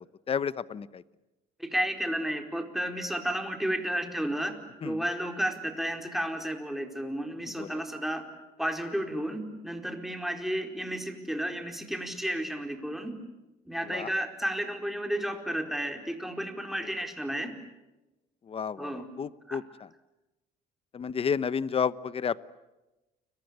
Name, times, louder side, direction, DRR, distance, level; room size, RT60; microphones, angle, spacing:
voice 1, 0.3-1.0 4.8-5.0 7.6-7.7 13.9-14.1 18.5-19.6 20.9-22.4, left 7 dB, 35° left, 17 dB, 1.0 m, -31 dB
voice 2, 1.6-4.6 4.8-8.2 8.6-13.2 13.7-17.6 18.8-19.1 19.5-19.6, right 1 dB, ahead, 4 dB, 4.5 m, -32 dB
30.0 x 24.0 x 8.2 m, 1.0 s
cardioid pair, 110°, 17 cm